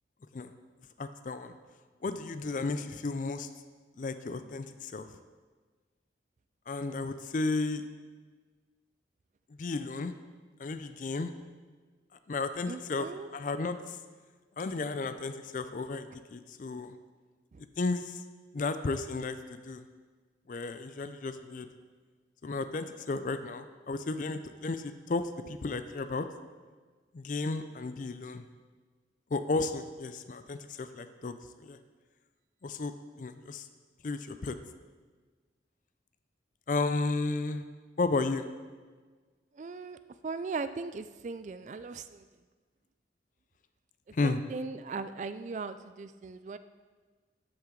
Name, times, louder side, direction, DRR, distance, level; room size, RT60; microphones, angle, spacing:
voice 1, 1.0-1.6 2.0-3.5 4.0-5.2 6.7-7.9 9.6-10.1 10.6-11.3 12.3-13.1 13.3-14.0 14.6-17.0 17.8-18.2 18.5-19.8 20.5-21.7 22.4-26.3 27.1-28.4 29.3-31.8 32.6-33.7 34.0-34.6 36.7-37.7 38.0-38.5 44.1-44.4, left 3 dB, 45° left, 10 dB, 0.4 m, -33 dB
voice 2, 12.7-13.3 17.5-17.6 39.5-40.0 40.2-42.3 44.2-46.6, right 4 dB, 40° right, 12 dB, 0.3 m, -38 dB
13.0 x 5.9 x 3.8 m, 1.4 s
head